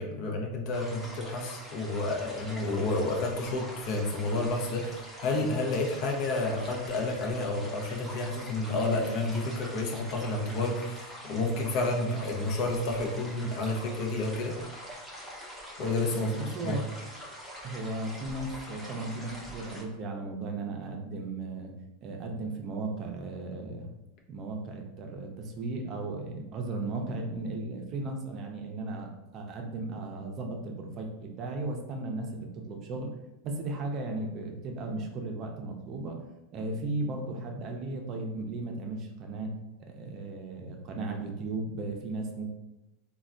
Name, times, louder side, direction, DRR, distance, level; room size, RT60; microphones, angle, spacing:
voice 1, 0.0-14.6 15.8-16.3 16.6-16.8, left 2 dB, 55° left, 1 dB, 0.6 m, -30 dB
sound 1, 0.7-19.8, equal, ahead, 0.8 m, -44 dB
voice 2, 16.1-16.9 17.6-21.7 22.0-23.9 24.3-33.1 33.4-36.2 36.5-39.5 39.9-42.5, right 2 dB, 40° right, 2 dB, 0.5 m, -36 dB
3.1 x 2.2 x 2.5 m, 0.96 s
supercardioid pair, 115°, 0 cm